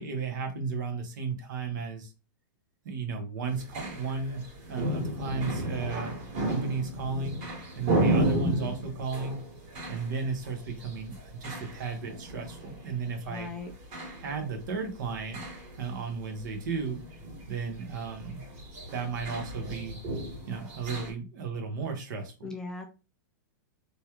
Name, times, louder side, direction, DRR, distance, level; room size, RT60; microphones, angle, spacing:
voice 1, 0.0-2.1 2.8-6.2 6.4-7.4 7.7-9.4 9.9-13.5 14.2-15.4 15.8-17.0 17.5-18.4 18.9-20.0 20.5-22.6, right 4 dB, 65° right, 1.1 m, -34 dB
sound 1, 3.5-21.1, right 1 dB, 40° right, 1.7 m, -34 dB
voice 2, 8.3-8.8 13.3-13.7 22.4-22.9, left 4 dB, 5° left, 0.4 m, -38 dB
3.0 x 2.3 x 3.0 m
supercardioid pair, 155°, 11 cm